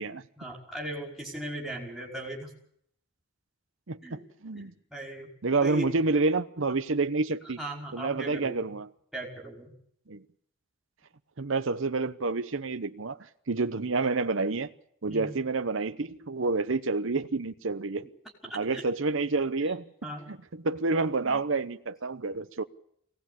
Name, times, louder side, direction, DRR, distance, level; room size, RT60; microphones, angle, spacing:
voice 1, 0.4-2.5 4.0-4.2 4.5-5.3 5.6-5.9 7.4-8.7 9.1-9.7 15.1-15.3 18.7-18.8 20.0-20.3, right 1 dB, ahead, 5.3 m, -38 dB
voice 2, 3.9-4.7 5.4-7.6 7.9-8.9 10.1-10.2 11.4-13.2 13.5-14.7 15.0-18.1 18.5-19.8 20.6-22.6, right 3 dB, 70° right, 0.9 m, -28 dB
23.5 x 18.5 x 8.5 m
head